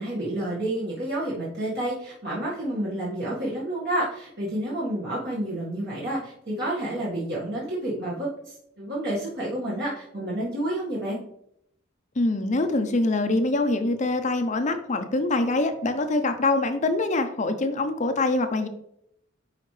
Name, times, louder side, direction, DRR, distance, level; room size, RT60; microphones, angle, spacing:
voice 1, 0.0-11.2, right 1 dB, 55° right, -6 dB, 1.7 m, -29 dB
voice 2, 12.2-18.7, left 2 dB, 40° left, 8 dB, 0.6 m, -24 dB
10.5 x 4.3 x 3.2 m, 0.75 s
head